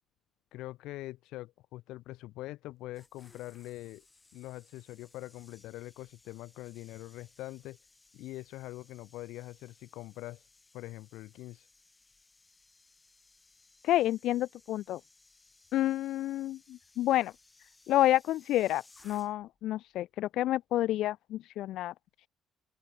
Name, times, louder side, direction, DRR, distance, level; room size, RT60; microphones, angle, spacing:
voice 1, 0.5-4.0 4.3-7.8 8.1-10.4 10.7-11.7, left 17 dB, 90° left, 3.9 m, -43 dB
sound 1, 2.7-19.6 19.9-20.2, left 3 dB, 15° left, 6.6 m, -62 dB
voice 2, 13.8-15.0 15.7-16.6 17.0-17.3 17.9-21.9, left 14 dB, 65° left, 0.7 m, -29 dB
open air
cardioid pair, 170°, 0 cm